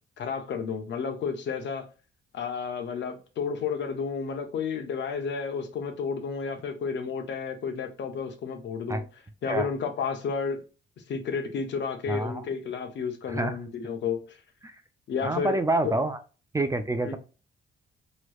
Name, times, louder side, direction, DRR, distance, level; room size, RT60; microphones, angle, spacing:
voice 1, 0.2-1.9 2.3-10.6 11.1-14.4 15.1-15.6 15.8-15.9 17.0-17.2, left 6 dB, 65° left, 0.9 m, -32 dB
voice 2, 12.1-12.4 13.3-13.6 15.2-16.2 16.5-17.2, right 2 dB, 15° right, 0.4 m, -27 dB
3.1 x 3.0 x 2.3 m
cardioid pair, 90°, 20 cm